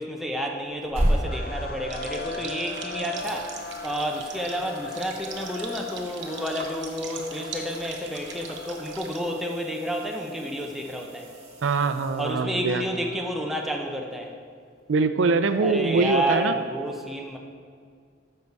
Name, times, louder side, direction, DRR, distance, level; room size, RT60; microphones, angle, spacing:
voice 1, 0.0-3.6 3.8-11.3 12.2-14.3 15.6-17.4, equal, ahead, 1 dB, 0.6 m, -30 dB
sound 1, 0.6-2.8 3.2-12.8 15.5-15.6, equal, 30° right, 1.7 m, -35 dB
sound 2, 1.2-13.6, left 4 dB, 50° left, 0.5 m, -40 dB
sound 3, 1.9-9.2, right 5 dB, 65° right, 0.9 m, -41 dB
voice 2, 11.6-13.0 14.9-16.5, right 4 dB, 85° right, 9 dB, 0.4 m, -23 dB
7.5 x 6.6 x 4.6 m, 2.1 s
head